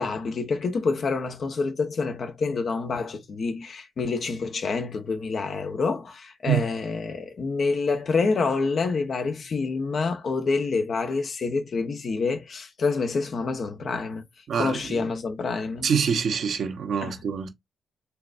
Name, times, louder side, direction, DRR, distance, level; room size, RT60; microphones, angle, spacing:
voice 1, 0.0-14.2 14.6-15.9 17.0-17.2, left 4 dB, 55° left, 1.0 m, -27 dB
voice 2, 14.5-15.1 15.8-17.5, right 7 dB, 65° right, 0.9 m, -25 dB
4.5 x 3.4 x 2.4 m
hypercardioid pair, 45°, 0 cm